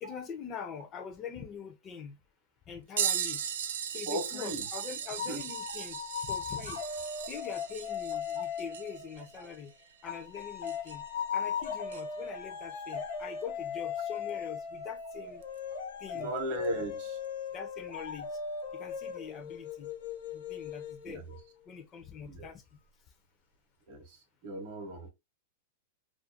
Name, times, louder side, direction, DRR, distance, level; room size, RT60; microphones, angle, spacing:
voice 1, 0.0-2.2 2.7-3.4 3.9-6.0 6.3-6.8 7.3-9.7 10.0-11.0 11.3-15.4 16.0-16.3 17.5-18.3 18.7-19.9 20.3-21.2 21.7-22.6, left 7 dB, 20° left, 0.3 m, -43 dB
sound 1, 3.0-11.2 11.9-12.0 14.3-14.4 15.4-15.6 16.6-16.7, right 8 dB, 80° right, 0.3 m, -37 dB
voice 2, 4.1-4.7 5.3-5.4 8.4-8.5 9.4-9.5 16.1-17.2 21.0-21.4 22.3-22.5 23.9-25.1, right 1 dB, 45° right, 0.7 m, -37 dB
sound 2, 5.2-9.5 10.1-21.4, left 6 dB, 80° left, 0.9 m, -38 dB
2.3 x 2.1 x 2.6 m
supercardioid pair, 160°, 0 cm